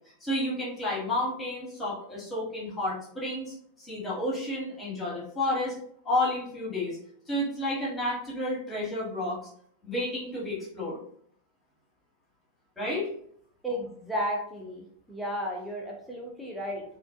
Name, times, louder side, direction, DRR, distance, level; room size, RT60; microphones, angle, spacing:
voice 1, 0.2-5.7 6.0-7.0 7.3-9.4 9.8-11.0 12.8-13.1, left 1 dB, 15° left, -6 dB, 1.1 m, -31 dB
voice 2, 13.6-16.8, equal, ahead, -1 dB, 0.6 m, -33 dB
2.5 x 2.1 x 2.3 m, 0.65 s
figure-of-eight pair, 90°, 0 cm